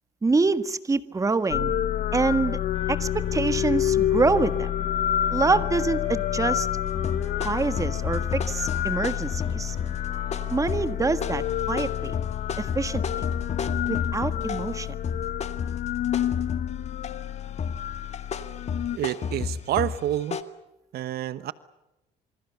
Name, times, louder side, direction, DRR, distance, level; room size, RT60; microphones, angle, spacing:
voice 1, 0.2-1.7 2.1-2.6 2.9-4.9 5.3-6.7 7.4-9.7 10.5-12.2 12.6-13.2 13.9-14.9, right 3 dB, 20° right, 12 dB, 1.5 m, -26 dB
sound 1, 1.5-19.0, left 11 dB, 60° left, 0.9 m, -28 dB
sound 2, 2.7-10.9, right 3 dB, 35° right, 7.0 m, -49 dB
sound 3, 7.0-14.8 15.0-17.3 17.6-20.4, left 6 dB, 40° left, 1.9 m, -32 dB
voice 2, 18.9-20.4 20.9-21.5, right 12 dB, 70° right, 15 dB, 1.1 m, -28 dB
27.5 x 25.5 x 7.0 m, 0.91 s
cardioid pair, 110°, 17 cm